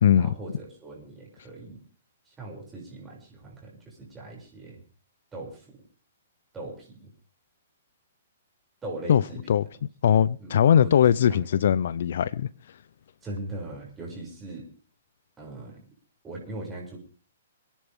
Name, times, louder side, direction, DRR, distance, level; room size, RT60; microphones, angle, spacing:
voice 1, 0.1-1.8 2.2-4.8 5.3-5.8 6.5-7.1 8.8-9.4 10.4-11.0 11.3-11.5 13.2-14.7 15.4-15.8 16.2-17.0, right 2 dB, 10° right, 6.7 m, -40 dB
voice 2, 10.0-12.5, left 9 dB, 65° left, 0.6 m, -20 dB
27.0 x 10.5 x 3.7 m
hypercardioid pair, 150°, 0 cm